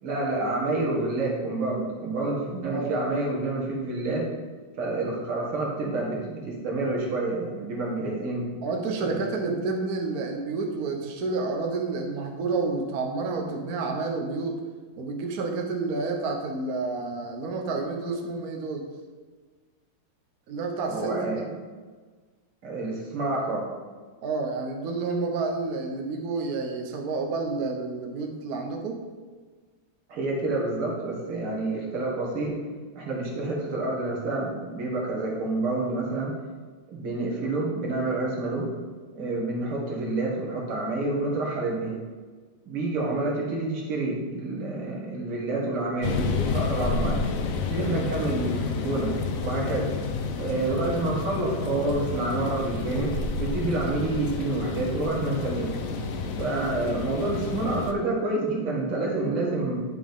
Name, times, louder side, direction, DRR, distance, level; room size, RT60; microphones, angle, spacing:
voice 1, 0.0-4.2 4.8-8.5 9.1-9.2 20.9-21.4 22.6-23.7 30.1-32.6 33.0-36.3 36.9-38.7 39.1-42.0 42.7-47.2 47.7-49.1 49.4-49.9 50.4-53.1 53.4-55.8 56.4-59.8, right 2 dB, 80° right, -3 dB, 2.5 m, -28 dB
voice 2, 2.7-3.1 8.6-14.5 15.0-18.9 20.5-21.5 24.2-29.0 47.9-48.1, right 3 dB, 55° right, 2 dB, 1.2 m, -30 dB
sound 1, 46.0-57.9, left 4 dB, 80° left, 0.7 m, -30 dB
9.4 x 6.2 x 3.6 m, 1.4 s
omnidirectional pair, 2.4 m